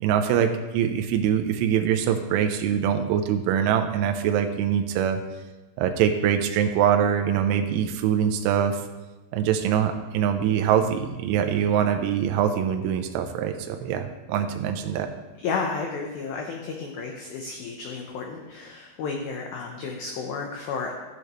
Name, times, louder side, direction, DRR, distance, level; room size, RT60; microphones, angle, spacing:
voice 1, 0.0-5.2 5.8-8.8 9.3-15.1, right 9 dB, 90° right, 6 dB, 3.1 m, -23 dB
voice 2, 15.4-20.9, left 4 dB, 90° left, 1 dB, 2.1 m, -32 dB
14.0 x 8.2 x 3.1 m, 1.1 s
omnidirectional pair, 5.5 m